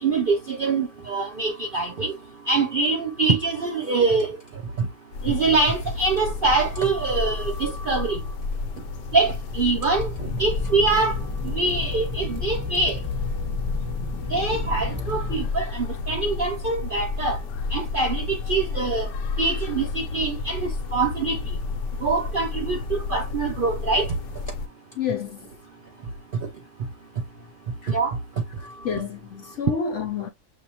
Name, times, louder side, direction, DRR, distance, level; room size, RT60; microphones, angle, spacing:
voice 1, 0.0-2.1 2.5-4.4 4.8-4.9 5.2-8.2 9.1-11.2 11.4-13.0 14.3-17.4 17.7-19.1 19.4-21.4 22.0-24.1 27.9-28.2, right 3 dB, 60° right, 0.5 m, -24 dB
sound 1, 5.1-24.7, left 4 dB, 90° left, 1.2 m, -31 dB
sound 2, 10.0-15.5, left 3 dB, 10° left, 0.9 m, -33 dB
voice 2, 25.0-25.5 27.8-28.0 28.8-30.3, left 6 dB, 65° left, 0.8 m, -29 dB
6.4 x 2.7 x 2.8 m
omnidirectional pair, 1.7 m